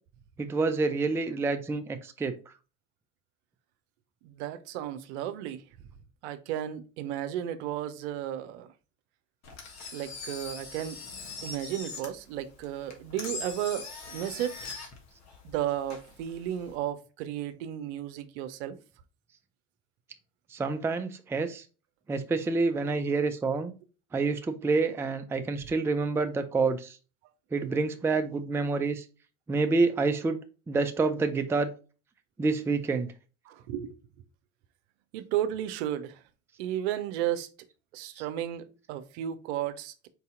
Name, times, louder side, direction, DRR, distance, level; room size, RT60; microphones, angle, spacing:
voice 1, 0.4-2.3 20.5-21.6 22.1-23.7 24.1-27.0 27.5-29.0 29.5-30.4 30.7-31.7 32.4-33.1 38.2-38.3, right 3 dB, 5° right, 0.4 m, -28 dB
voice 2, 4.2-5.6 6.2-8.7 9.9-11.0 11.4-14.7 15.4-18.8 33.5-34.0 35.1-36.2 36.6-37.5 37.9-40.1, right 11 dB, 65° right, 0.7 m, -33 dB
Engine, 9.4-16.8, left 4 dB, 45° left, 1.5 m, -42 dB
4.5 x 2.7 x 3.7 m
hypercardioid pair, 70°, 36 cm